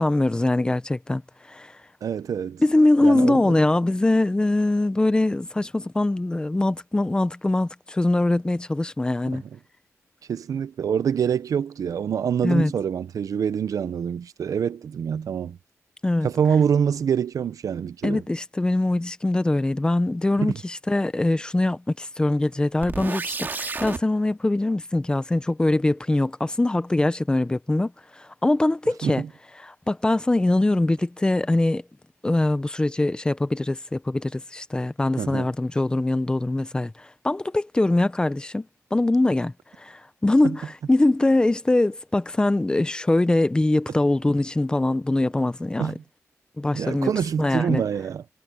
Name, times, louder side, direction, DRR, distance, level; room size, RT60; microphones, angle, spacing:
voice 1, 0.0-1.8 2.6-9.4 12.4-12.7 16.0-16.3 18.0-29.2 29.6-31.8 32.2-46.0 46.6-47.1 47.4-47.8, left 2 dB, 15° left, 0.7 m, -23 dB
voice 2, 2.0-2.6 3.0-3.5 10.3-15.6 16.2-18.2 20.4-20.6 29.0-29.3 35.2-35.5 40.4-40.5 45.8-46.0 46.7-48.2, right 7 dB, 85° right, 0.7 m, -25 dB
sound 1, 22.8-24.0, right 4 dB, 35° right, 2.1 m, -30 dB
wide cardioid pair, 160°, 6 cm